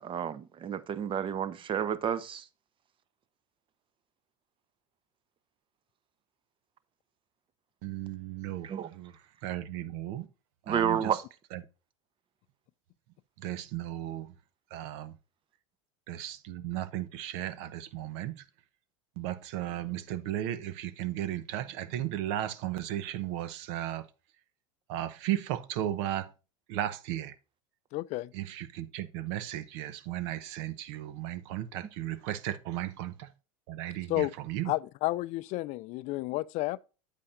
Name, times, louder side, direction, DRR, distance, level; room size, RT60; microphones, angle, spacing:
voice 1, 0.0-2.4 8.6-8.9 10.7-11.2, right 8 dB, 35° right, 0.8 m, -30 dB
voice 2, 7.8-9.1 9.4-10.3 10.7-11.1 11.5-11.6 13.4-14.3 14.7-15.1 16.1-18.4 19.2-24.1 24.9-26.3 26.7-27.3 28.3-33.3 33.7-34.7, right 13 dB, 65° right, 0.8 m, -35 dB
voice 3, 27.9-28.3 34.1-34.3 34.7-36.9, left 19 dB, 50° left, 0.4 m, -31 dB
8.5 x 8.3 x 2.5 m
hypercardioid pair, 95°, 15 cm